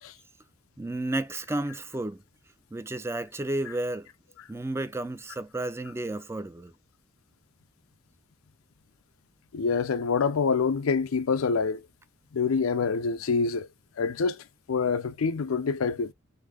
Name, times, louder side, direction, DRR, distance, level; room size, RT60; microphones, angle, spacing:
voice 1, 0.8-2.2 2.7-4.1 4.5-6.7, right 1 dB, 10° right, 0.4 m, -32 dB
voice 2, 9.5-11.8 12.3-13.7 14.0-16.1, left 5 dB, 85° left, 0.5 m, -26 dB
3.9 x 2.7 x 4.8 m
head